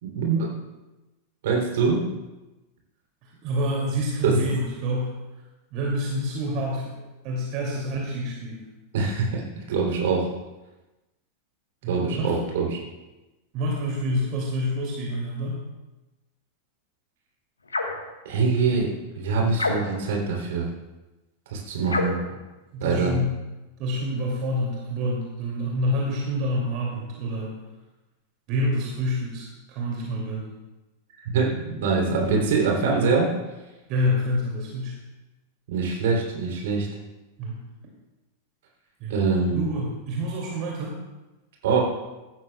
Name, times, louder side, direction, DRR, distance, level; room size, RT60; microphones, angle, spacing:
voice 1, 0.0-0.5 1.4-2.1 4.2-4.4 8.9-10.3 11.9-12.8 18.2-20.7 21.5-22.2 22.8-23.1 31.3-33.3 35.7-36.9 39.1-39.6 41.6-41.8, right 4 dB, 55° right, -1 dB, 3.1 m, -24 dB
voice 2, 3.2-5.1 5.7-8.6 11.8-12.3 13.5-15.6 22.7-23.3 23.8-27.5 28.5-30.5 33.9-35.0 37.4-37.6 39.0-39.1 39.5-41.0, equal, 40° right, -2 dB, 2.5 m, -27 dB
sound 1, 17.7-18.1 19.6-20.1 21.9-22.3, left 3 dB, 75° left, 1.3 m, -27 dB
16.0 x 12.5 x 2.3 m, 1.1 s
figure-of-eight pair, 90°, 0 cm